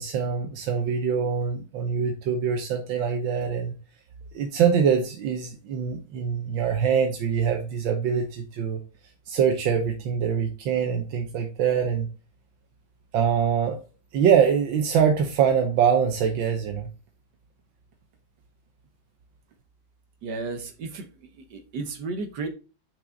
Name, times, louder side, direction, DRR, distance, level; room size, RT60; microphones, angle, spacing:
voice 1, 0.0-3.7 4.3-8.8 9.3-12.1 13.1-13.8 14.1-16.9, right 7 dB, 80° right, 3 dB, 1.6 m, -24 dB
voice 2, 20.2-21.1 21.5-22.5, right 3 dB, 65° right, 7 dB, 1.5 m, -33 dB
5.9 x 5.4 x 3.8 m, 0.33 s
omnidirectional pair, 2.1 m